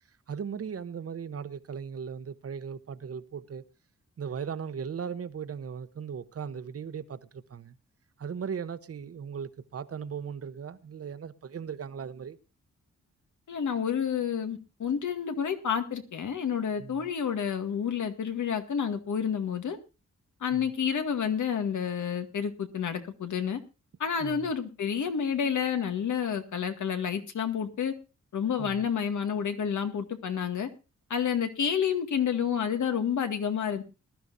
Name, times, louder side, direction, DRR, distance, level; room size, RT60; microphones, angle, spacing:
voice 1, 0.3-3.6 4.2-7.8 8.2-12.4 16.8-17.1 20.5-20.7 24.2-24.5 28.6-28.8, right 7 dB, 55° right, 1.0 m, -38 dB
voice 2, 13.5-19.8 20.4-23.6 24.0-27.9 28.3-30.7 31.1-33.8, left 7 dB, 85° left, 2.1 m, -29 dB
20.5 x 12.5 x 2.6 m
wide cardioid pair, 165°, 29 cm